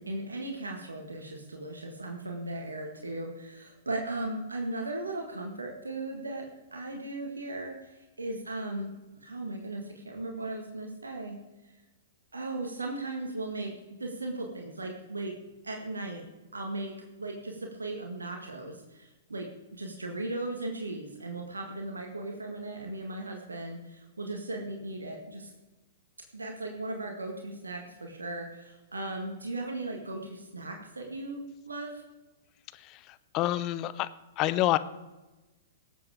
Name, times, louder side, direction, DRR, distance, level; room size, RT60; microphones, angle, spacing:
voice 1, 0.0-8.9 9.2-11.4 11.6-11.7 12.3-13.7 14.0-15.3 15.6-16.2 16.5-25.5 26.3-32.0, right 2 dB, 85° right, 2 dB, 1.8 m, -37 dB
voice 2, 32.8-34.1 34.4-34.8, left 15 dB, 35° left, 15 dB, 0.7 m, -28 dB
19.0 x 7.9 x 5.0 m, 1.1 s
figure-of-eight pair, 110°, 0 cm